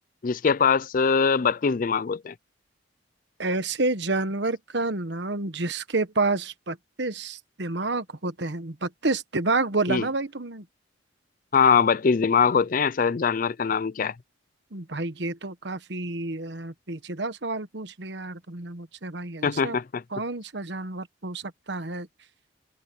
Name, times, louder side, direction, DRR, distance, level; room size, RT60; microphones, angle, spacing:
voice 1, 0.2-2.3 9.9-10.1 11.5-14.1 19.4-20.0, left 6 dB, 45° left, 0.4 m, -22 dB
voice 2, 3.4-10.6 14.7-19.8 20.1-21.4 21.7-22.1, right 3 dB, 60° right, 1.3 m, -29 dB
head